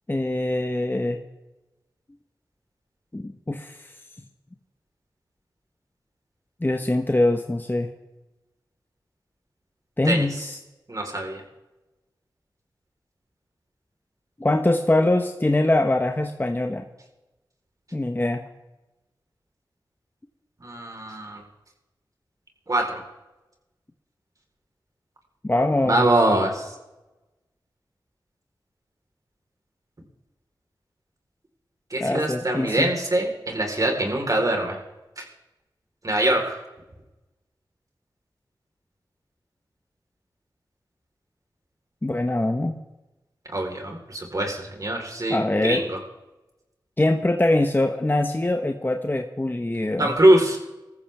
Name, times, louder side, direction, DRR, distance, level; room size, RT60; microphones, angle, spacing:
voice 1, 0.1-1.2 3.1-3.9 6.6-7.9 10.0-10.6 14.4-16.8 17.9-18.4 25.4-26.1 32.0-32.9 42.0-42.8 45.3-45.8 47.0-50.2, left 1 dB, 25° left, 5 dB, 1.2 m, -23 dB
voice 2, 10.9-11.4 20.6-21.4 22.7-23.0 25.8-26.7 31.9-34.8 35.2-35.3 36.0-36.6 43.5-46.0 50.0-50.6, right 1 dB, 45° right, 2 dB, 4.2 m, -23 dB
19.5 x 14.5 x 3.6 m, 1.0 s
cardioid pair, 40°, 8 cm